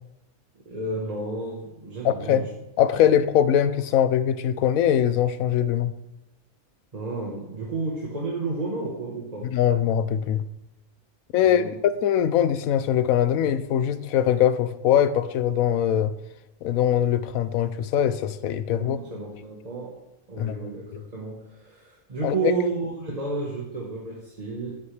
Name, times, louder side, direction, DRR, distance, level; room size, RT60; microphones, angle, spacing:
voice 1, 0.5-2.5 3.0-3.1 6.9-9.5 11.4-11.8 18.7-20.0 20.3-24.8, right 3 dB, 30° right, -3 dB, 1.2 m, -31 dB
voice 2, 2.0-2.4 2.8-5.9 9.5-10.4 11.3-11.7 12.0-16.1 16.6-19.0 20.4-21.0 22.2-22.5, left 10 dB, 85° left, 13 dB, 1.1 m, -22 dB
10.5 x 7.9 x 3.3 m, 0.94 s
omnidirectional pair, 1.4 m